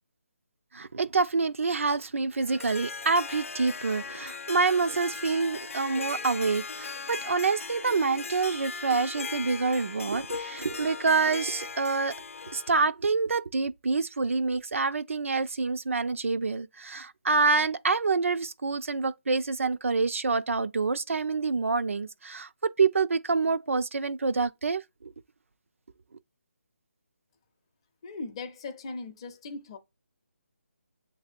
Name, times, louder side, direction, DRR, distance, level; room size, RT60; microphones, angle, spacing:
voice 1, 0.7-12.1 12.5-25.1, right 4 dB, 80° right, 0.4 m, -27 dB
Harp, 2.3-12.8, left 5 dB, 85° left, 0.4 m, -38 dB
voice 2, 28.0-29.8, left 3 dB, 25° left, 0.5 m, -39 dB
7.2 x 2.7 x 2.5 m
hypercardioid pair, 165°, 7 cm